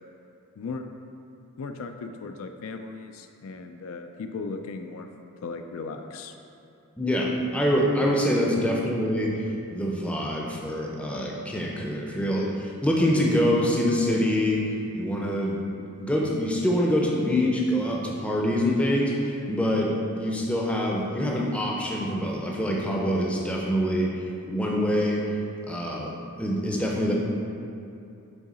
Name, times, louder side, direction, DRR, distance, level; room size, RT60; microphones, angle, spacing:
voice 1, 1.6-5.1 5.4-6.3, left 4 dB, 70° left, 6 dB, 0.3 m, -37 dB
voice 2, 7.0-9.3 9.7-14.6 14.9-15.6 16.0-24.1 24.5-25.2 25.7-27.1, equal, 5° left, -2 dB, 0.5 m, -25 dB
6.2 x 3.7 x 4.2 m, 2.7 s
head